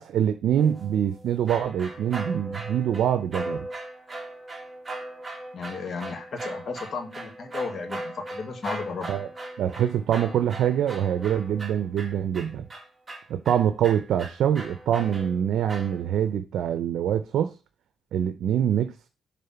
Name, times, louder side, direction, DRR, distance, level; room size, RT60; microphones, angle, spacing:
voice 1, 0.0-3.7 9.1-9.3 9.6-12.7 13.3-17.5 18.1-18.9, right 9 dB, 85° right, 0.6 m, -25 dB
sound 1, 0.6-16.3, right 2 dB, 25° right, 2.1 m, -38 dB
voice 2, 5.5-9.1, left 5 dB, 55° left, 1.8 m, -34 dB
7.6 x 3.8 x 5.7 m
cardioid pair, 105°, 0 cm